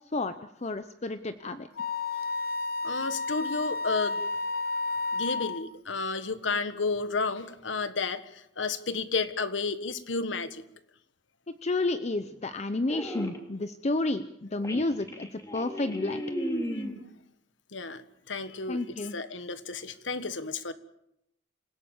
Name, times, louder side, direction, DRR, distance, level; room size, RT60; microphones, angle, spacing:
voice 1, 0.6-1.7 11.6-16.2 18.7-19.1, left 2 dB, 35° left, 10 dB, 0.7 m, -31 dB
Wind instrument woodwind instrument, 1.8-5.6, left 3 dB, 55° left, 1.3 m, -31 dB
voice 2, 2.8-4.2 5.1-8.2 8.6-10.6 16.7-16.8 17.7-18.0 18.3-20.7, left 4 dB, 90° left, 12 dB, 1.6 m, -32 dB
sound 1, 12.0-12.4 12.9-13.4 14.1-14.2 14.6-17.0, equal, 15° left, 2.9 m, -35 dB
27.5 x 17.0 x 7.3 m, 0.79 s
head